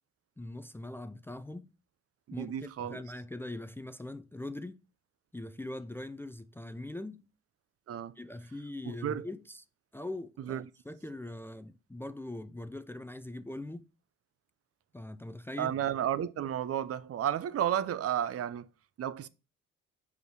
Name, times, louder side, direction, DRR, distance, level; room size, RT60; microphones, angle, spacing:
voice 1, 0.4-1.7 2.3-2.5 2.8-4.8 5.3-7.2 8.2-9.6 9.9-13.9 14.9-15.7, left 1 dB, 10° left, 0.4 m, -41 dB
voice 2, 2.3-3.0 7.9-8.2 8.8-9.3 10.4-10.7 15.6-18.7 19.0-19.3, right 10 dB, 50° right, 0.6 m, -32 dB
5.1 x 5.0 x 4.7 m
cardioid pair, 90°, 30 cm